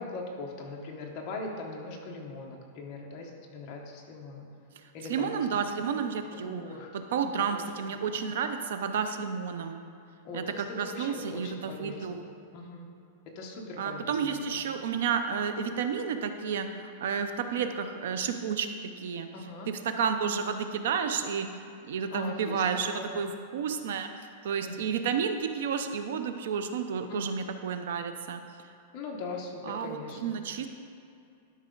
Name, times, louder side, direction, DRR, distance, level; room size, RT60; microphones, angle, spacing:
voice 1, 0.0-4.5 4.9-5.7 6.3-7.7 10.2-12.3 12.5-12.9 13.2-14.6 19.3-19.7 22.1-22.6 22.9-23.3 24.6-24.7 27.1-27.2 28.9-30.4, left 3 dB, 30° left, -1 dB, 1.1 m, -41 dB
voice 2, 4.8-6.6 7.1-9.8 10.3-12.2 13.8-19.3 19.7-28.4 29.7-30.7, right 6 dB, 60° right, 8 dB, 0.6 m, -31 dB
12.0 x 5.5 x 3.9 m, 2.4 s
supercardioid pair, 180°, 0 cm